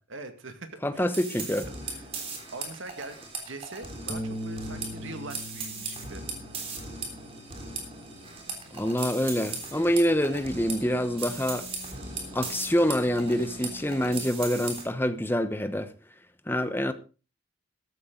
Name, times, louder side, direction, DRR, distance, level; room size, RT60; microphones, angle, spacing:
voice 1, 0.1-1.2 1.8-3.2 3.4-6.2, right 3 dB, 75° right, 2.1 m, -42 dB
voice 2, 0.8-1.7 8.7-11.7 12.3-15.9 16.5-16.9, equal, 10° left, 1.0 m, -26 dB
sound 1, 1.1-14.8, right 3 dB, 30° right, 3.4 m, -38 dB
Bass guitar, 4.1-8.6 9.0-10.3, equal, 15° right, 1.7 m, -42 dB
sound 2, 4.2-14.3, equal, 50° right, 6.1 m, -50 dB
14.0 x 12.5 x 3.9 m
head